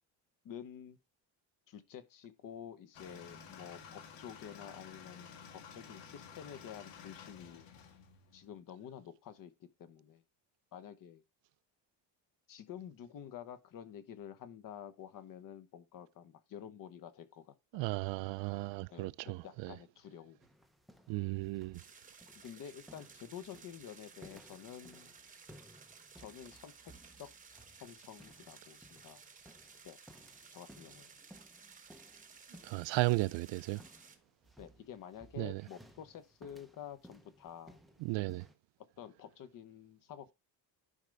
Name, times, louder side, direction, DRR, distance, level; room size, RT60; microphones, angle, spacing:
voice 1, 0.4-1.0 1.7-7.7 8.3-10.2 10.7-11.2 12.5-17.9 18.9-20.4 22.3-25.1 26.2-27.3 27.7-29.2 29.8-30.0 30.5-31.1 34.6-37.8 39.0-40.3, left 9 dB, 45° left, 1.1 m, -50 dB
sound 1, 2.9-8.6, left 6 dB, 70° left, 1.8 m, -53 dB
voice 2, 17.7-19.7 21.1-21.8 32.6-33.8 35.4-35.6 38.0-38.4, right 22 dB, 75° right, 0.5 m, -35 dB
sound 2, 20.4-38.6, equal, ahead, 0.5 m, -60 dB
sound 3, 21.7-34.2, right 5 dB, 20° right, 0.9 m, -57 dB
11.0 x 5.2 x 3.4 m
cardioid pair, 180°, 44 cm